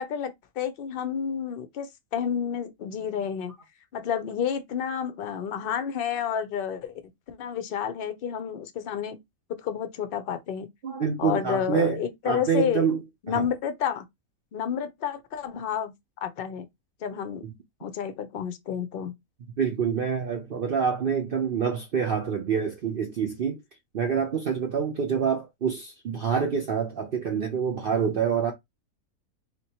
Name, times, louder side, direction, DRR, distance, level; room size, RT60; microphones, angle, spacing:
voice 1, 0.0-3.5 3.9-7.0 7.3-9.2 9.6-10.7 11.2-12.9 13.2-14.0 14.5-15.9 16.2-16.6 17.0-17.4 17.8-19.1, left 8 dB, 60° left, 0.6 m, -30 dB
voice 2, 10.8-13.0 13.3-13.5 17.4-17.5 19.6-23.6 23.9-28.5, right 7 dB, 60° right, 0.6 m, -26 dB
3.6 x 2.9 x 2.8 m
omnidirectional pair, 1.6 m